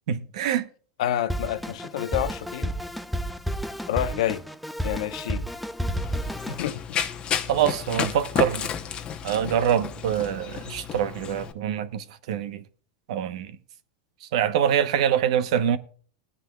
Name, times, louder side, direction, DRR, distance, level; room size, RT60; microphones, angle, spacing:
voice 1, 0.1-0.7 7.5-8.7 9.2-12.6 13.1-13.5 14.3-15.8, right 9 dB, 70° right, 0.9 m, -25 dB
voice 2, 1.0-2.7 3.9-4.4 4.8-5.5 6.5-6.8, left 12 dB, 75° left, 0.9 m, -28 dB
Drum kit, 1.3-6.7, equal, ahead, 0.5 m, -31 dB
Run, 5.9-11.5, left 8 dB, 25° left, 0.9 m, -31 dB
19.0 x 9.7 x 2.3 m
supercardioid pair, 140°, 4 cm